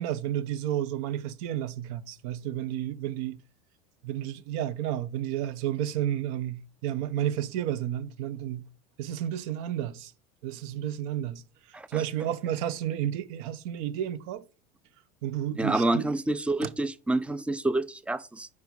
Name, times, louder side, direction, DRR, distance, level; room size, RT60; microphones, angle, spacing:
voice 1, 0.0-3.4 4.0-8.6 9.0-10.1 10.4-11.4 11.9-14.4 15.2-16.1 16.6-16.7, right 11 dB, 65° right, 0.7 m, -31 dB
voice 2, 15.6-18.5, right 2 dB, 5° right, 0.4 m, -28 dB
4.8 x 4.6 x 5.1 m
supercardioid pair, 110°, 19 cm